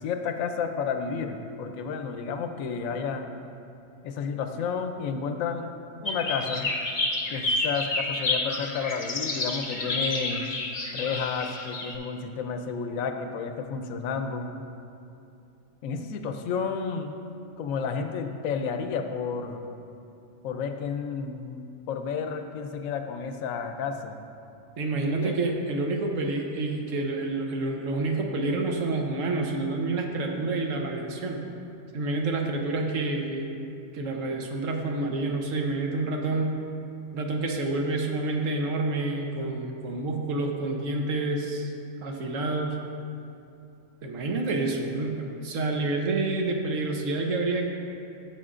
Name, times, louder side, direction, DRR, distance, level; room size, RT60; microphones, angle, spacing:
voice 1, 0.0-3.3 4.0-5.7 6.0-6.7 7.3-10.4 10.9-14.5 15.8-17.2 17.6-19.7 20.4-21.6 21.9-24.2 25.0-25.6, left 6 dB, 85° left, 6 dB, 1.0 m, -31 dB
sound 1, 6.1-11.9, left 2 dB, 45° left, 0.8 m, -30 dB
voice 2, 24.8-31.4 31.9-33.5 33.9-36.6 37.1-41.7 42.0-42.8 44.0-47.7, right 2 dB, 75° right, 2 dB, 1.2 m, -28 dB
12.0 x 7.3 x 2.5 m, 2.7 s
omnidirectional pair, 1.4 m